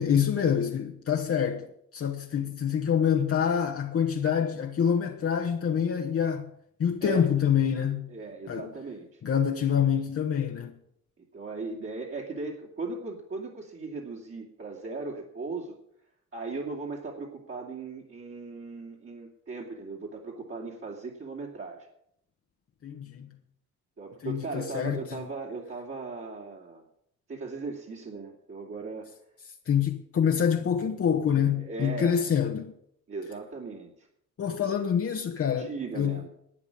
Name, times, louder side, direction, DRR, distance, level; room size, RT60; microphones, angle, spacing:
voice 1, 0.0-1.7 1.9-6.5 6.8-8.1 8.5-8.7 9.2-10.8 22.8-23.3 24.2-25.3 29.6-32.7 34.4-36.2, left 8 dB, 50° left, 1.4 m, -26 dB
voice 2, 8.1-9.2 11.2-15.7 16.3-21.9 24.0-26.8 27.3-29.1 31.6-32.2 33.1-33.9 34.6-34.8 35.6-36.3, right 3 dB, 45° right, 2.9 m, -38 dB
12.0 x 8.8 x 8.5 m
cardioid pair, 90°, 30 cm